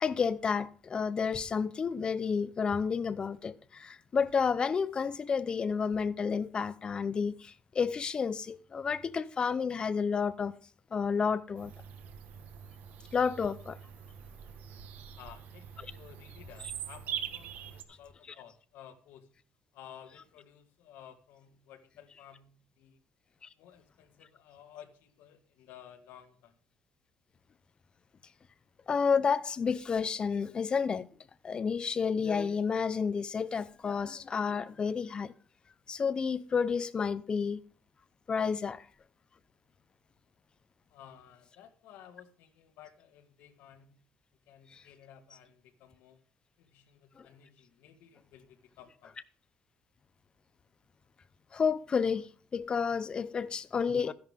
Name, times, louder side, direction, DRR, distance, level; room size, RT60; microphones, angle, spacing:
voice 1, 0.0-10.5 10.9-11.7 13.1-13.8 15.8-15.9 28.9-31.1 31.4-35.3 35.9-37.6 38.3-38.8 44.7-44.8 47.2-47.3 51.5-54.1, left 6 dB, 25° left, 0.6 m, -30 dB
Bird vocalization bird call bird song, 11.6-17.8, right 9 dB, 60° right, 1.3 m, -43 dB
voice 2, 15.1-19.3 19.7-23.0 23.6-26.6 40.9-44.0 44.5-46.2 46.6-49.1, left 9 dB, 80° left, 2.0 m, -54 dB
13.0 x 11.0 x 3.6 m
cardioid pair, 165°, 4 cm